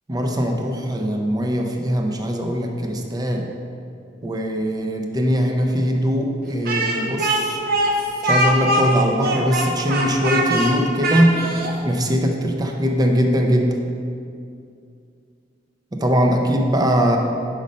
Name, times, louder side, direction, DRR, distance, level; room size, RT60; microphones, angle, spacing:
voice 1, 0.1-3.5 4.2-7.6 8.2-11.4 11.8-13.8 15.9-17.2, equal, 20° right, 2 dB, 0.5 m, -21 dB
Speech, 6.6-11.7, right 1 dB, 55° right, 0.8 m, -22 dB
5.3 x 5.1 x 5.3 m, 2.4 s
head